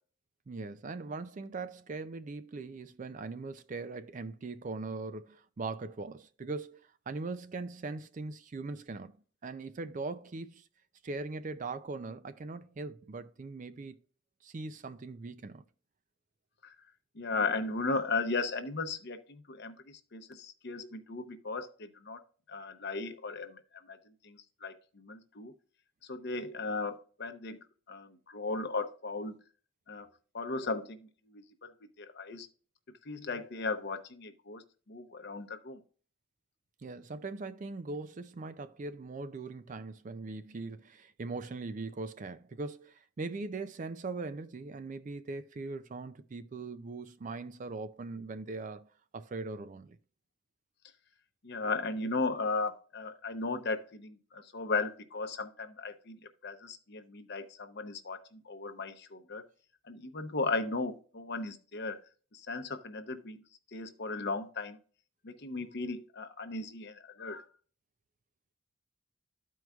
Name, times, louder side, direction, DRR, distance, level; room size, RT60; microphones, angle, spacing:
voice 1, 0.5-9.2 9.4-10.7 11.0-14.0 14.4-15.6 36.8-50.0, right 3 dB, 40° right, 0.4 m, -40 dB
voice 2, 17.2-22.2 22.5-25.5 26.0-27.6 27.9-29.4 29.9-30.1 30.3-32.5 33.0-35.8 51.4-59.4 59.9-62.0 62.3-63.4 63.7-64.8 65.2-67.4, left 3 dB, 55° left, 0.7 m, -36 dB
13.5 x 4.6 x 2.3 m
head